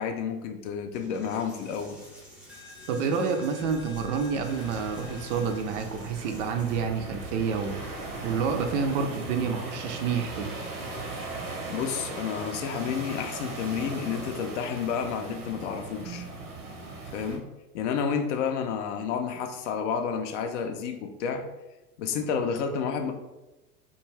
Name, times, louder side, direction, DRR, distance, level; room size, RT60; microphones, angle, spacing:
voice 1, 0.0-2.0 11.7-16.2 17.1-17.5 17.7-21.4 22.0-23.1, left 6 dB, 55° left, 6 dB, 0.5 m, -30 dB
Coin (dropping), 0.9-6.9, left 2 dB, ahead, 0.4 m, -48 dB
voice 2, 2.9-7.8 8.2-10.6, right 6 dB, 55° right, 5 dB, 0.5 m, -28 dB
sound 1, 3.6-9.1, left 3 dB, 90° left, 0.7 m, -47 dB
sound 2, 4.4-17.4, right 3 dB, 70° right, 0.8 m, -38 dB
2.3 x 2.2 x 3.1 m, 1.0 s
hypercardioid pair, 90°, 45 cm